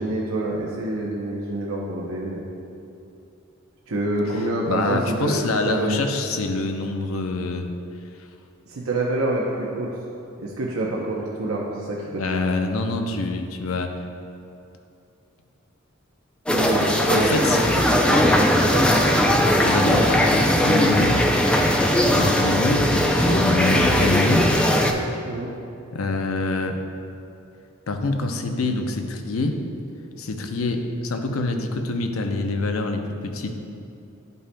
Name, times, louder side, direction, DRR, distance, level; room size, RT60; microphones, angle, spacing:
voice 1, 0.0-2.5 3.9-6.1 8.7-9.9 10.4-12.4 16.5-19.3 25.2-25.5, right 2 dB, 80° right, -3 dB, 0.7 m, -27 dB
voice 2, 4.6-7.7 12.2-13.9 17.1-17.6 19.6-21.3 22.0-24.5 25.9-26.8 27.9-29.6 30.2-33.6, left 3 dB, 85° left, 5 dB, 0.6 m, -25 dB
sound 1, 16.5-24.9, equal, 5° left, 0.3 m, -19 dB
11.0 x 5.4 x 2.2 m, 2.7 s
head